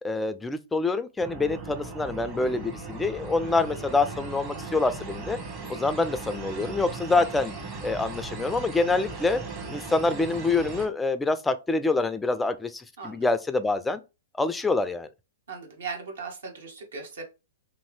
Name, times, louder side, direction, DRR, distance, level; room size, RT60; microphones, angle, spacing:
voice 1, 0.0-5.4 5.7-7.5 7.8-9.4 9.7-14.0 14.4-15.1, left 3 dB, 10° left, 0.3 m, -26 dB
sound 1, 1.2-10.9, right 3 dB, 25° right, 1.0 m, -38 dB
voice 2, 13.0-13.3 15.5-17.2, right 4 dB, 65° right, 1.0 m, -38 dB
2.7 x 2.5 x 3.1 m
figure-of-eight pair, 110°, 0 cm